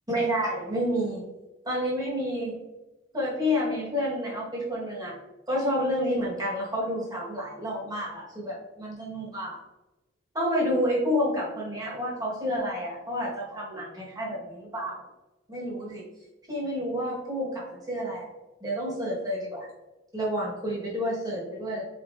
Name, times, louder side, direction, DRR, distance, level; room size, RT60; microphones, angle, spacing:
voice 1, 0.1-1.2 1.6-2.6 3.1-5.2 5.5-9.6 10.3-15.0 15.5-16.0 16.5-18.3 18.6-19.7 20.1-21.8, equal, 20° right, -5 dB, 1.4 m, -29 dB
4.1 x 3.7 x 2.6 m, 1.1 s
head